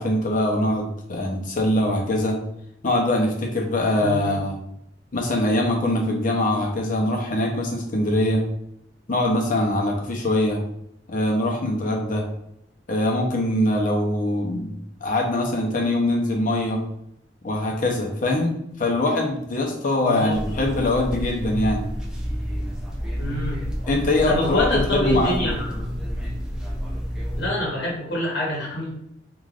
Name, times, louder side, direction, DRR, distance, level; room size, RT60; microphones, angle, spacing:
voice 1, 0.0-2.4 2.8-4.6 5.1-8.4 9.1-10.6 11.1-12.3 12.9-16.8 17.4-21.9 23.9-25.5, left 1 dB, 50° left, 0 dB, 0.6 m, -23 dB
voice 2, 4.0-4.4 20.0-20.6 23.2-23.6 24.3-25.9 27.4-28.9, left 1 dB, 75° left, -4 dB, 1.0 m, -26 dB
sound 1, 20.3-27.5, equal, 5° right, 0.4 m, -29 dB
3.3 x 2.4 x 2.4 m, 0.74 s
head